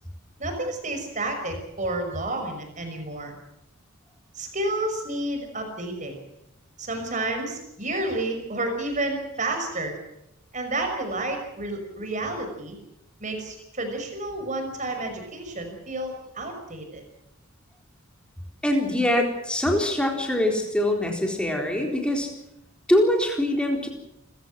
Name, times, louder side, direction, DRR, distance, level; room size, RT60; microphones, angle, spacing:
voice 1, 0.4-3.4 4.3-6.2 6.8-9.9 10.5-12.8 13.2-17.0, right 2 dB, 35° right, 5 dB, 5.6 m, -30 dB
voice 2, 18.6-22.3 22.9-23.9, left 1 dB, 5° left, 2 dB, 3.9 m, -23 dB
29.0 x 15.5 x 7.6 m, 0.85 s
head